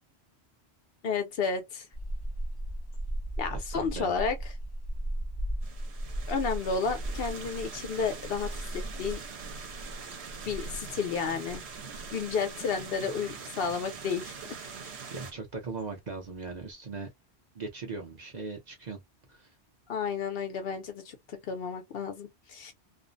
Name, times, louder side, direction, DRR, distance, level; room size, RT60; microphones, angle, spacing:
voice 1, 1.0-1.9 3.4-4.4 6.3-9.2 10.5-11.6 12.1-14.3 19.9-22.7, left 5 dB, 65° left, 0.8 m, -32 dB
sound 1, 1.9-16.7, right 1 dB, 40° left, 0.3 m, -38 dB
voice 2, 3.5-4.1 15.1-17.1 17.5-19.0 19.3-19.5, right 4 dB, 45° right, 0.7 m, -39 dB
sound 2, 5.6-15.3, right 5 dB, 75° right, 1.0 m, -43 dB
2.5 x 2.0 x 2.4 m
omnidirectional pair, 1.1 m